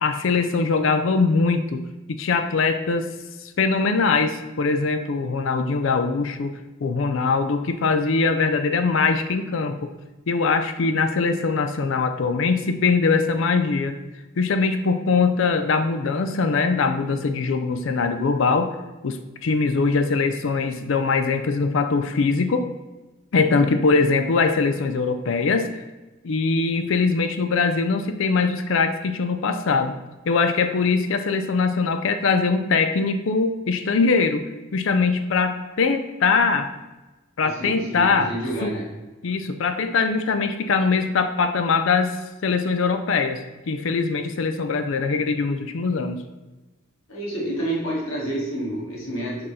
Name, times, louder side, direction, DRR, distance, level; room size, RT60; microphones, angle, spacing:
voice 1, 0.0-1.8 2.1-3.1 3.4-9.9 10.3-14.0 14.4-18.7 19.0-22.6 23.3-25.8 26.2-29.9 30.2-34.4 34.7-36.7 37.4-38.3 38.6-38.7 39.2-46.2, left 4 dB, 60° left, 8 dB, 0.4 m, -22 dB
voice 2, 37.4-38.9 47.1-49.5, right 1 dB, 75° left, -5 dB, 2.0 m, -29 dB
5.3 x 4.2 x 5.4 m, 1.1 s
head